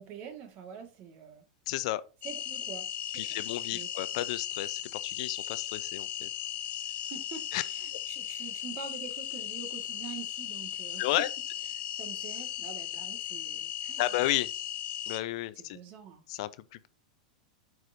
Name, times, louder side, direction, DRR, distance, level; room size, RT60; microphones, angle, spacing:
voice 1, 0.0-1.4 2.2-2.9 3.1-3.4 3.7-3.9 7.1-11.0 12.0-14.1 15.5-16.2, right 7 dB, 45° right, 1.8 m, -45 dB
voice 2, 1.7-2.0 3.1-6.3 7.5-7.6 11.0-11.3 14.0-14.5 15.1-15.8 16.3-16.9, left 16 dB, 55° left, 0.6 m, -32 dB
sound 1, 2.2-15.2, left 11 dB, 35° left, 1.1 m, -37 dB
11.5 x 4.8 x 2.7 m
hypercardioid pair, 95°, 4 cm